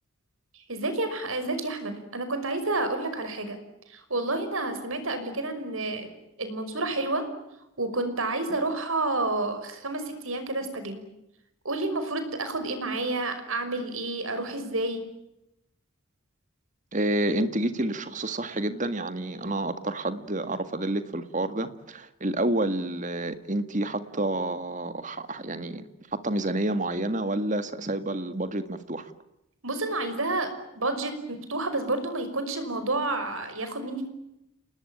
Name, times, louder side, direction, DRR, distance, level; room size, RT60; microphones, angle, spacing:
voice 1, 0.5-3.6 3.9-6.1 6.4-7.2 7.8-11.0 11.6-15.0 29.6-34.1, right 2 dB, 75° right, 9 dB, 5.6 m, -30 dB
voice 2, 16.9-29.1, right 1 dB, 35° right, 10 dB, 1.9 m, -29 dB
29.0 x 19.5 x 8.9 m, 0.86 s
head